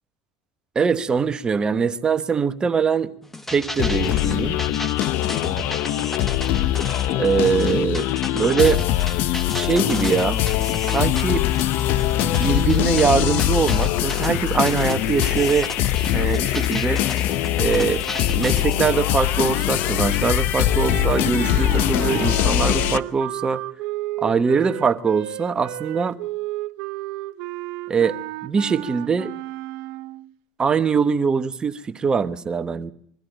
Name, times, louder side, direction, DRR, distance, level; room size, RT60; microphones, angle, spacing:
voice 1, 0.7-3.1 3.5-4.6 7.1-8.8 9.5-10.4 10.9-11.5 12.2-15.7 16.1-17.0 17.6-18.0 18.3-23.6 24.2-26.2 27.9-28.2 28.4-29.3 30.6-32.9, right 6 dB, 25° right, 1.1 m, -22 dB
sound 1, 3.2-18.8, left 1 dB, 10° left, 1.2 m, -34 dB
sound 2, 3.8-23.0, left 13 dB, 60° left, 0.8 m, -22 dB
sound 3, 20.8-30.3, right 19 dB, 70° right, 0.8 m, -33 dB
22.5 x 13.5 x 9.0 m
supercardioid pair, 110°, 3 cm